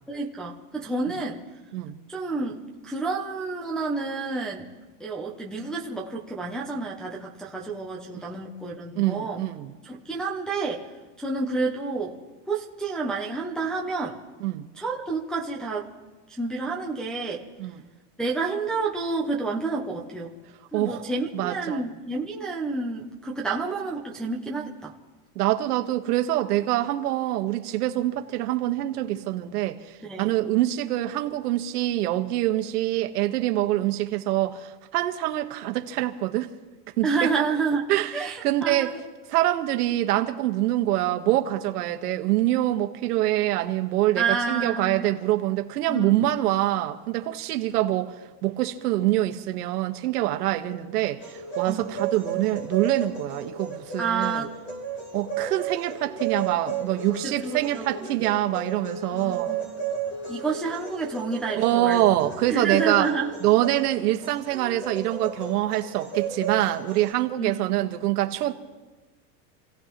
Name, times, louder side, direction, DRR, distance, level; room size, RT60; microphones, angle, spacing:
voice 1, 0.1-1.4 2.1-4.7 5.0-9.5 9.8-10.9 11.2-12.2 12.5-14.2 14.7-15.9 16.3-17.4 18.2-20.4 20.7-24.9 30.0-30.3 37.0-39.0 44.2-45.0 45.9-46.4 51.7-52.0 54.0-54.6 57.2-58.1 59.1-59.7 60.3-62.1 62.5-63.3 67.4-67.6, right 4 dB, ahead, 0.4 m, -29 dB
voice 2, 9.0-9.7 14.4-14.7 17.6-17.8 20.7-21.0 21.3-21.8 25.3-36.5 37.0-37.3 37.9-38.9 39.3-48.1 48.4-54.5 55.1-59.5 61.6-63.1 63.4-68.5, right 14 dB, 80° right, 1.4 m, -25 dB
sound 1, 51.2-67.1, right 6 dB, 25° left, 4.9 m, -34 dB
28.5 x 16.5 x 3.0 m
supercardioid pair, 170°, 46 cm